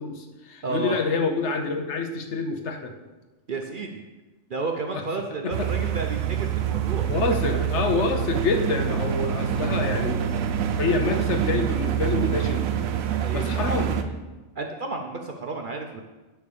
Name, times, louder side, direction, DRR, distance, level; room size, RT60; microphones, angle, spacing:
voice 1, 0.0-2.9 4.9-5.0 5.4-5.7 7.0-10.4 10.8-12.6 13.3-14.0, left 4 dB, 60° left, 5 dB, 1.0 m, -27 dB
voice 2, 0.6-1.0 3.5-4.0 4.5-8.0 13.2-13.5 13.9-14.2 14.6-16.0, right 4 dB, 50° right, 3 dB, 0.7 m, -32 dB
sound 1, 5.5-14.0, right 9 dB, 85° right, 1.1 m, -26 dB
10.5 x 3.5 x 6.8 m, 1.2 s
omnidirectional pair, 1.4 m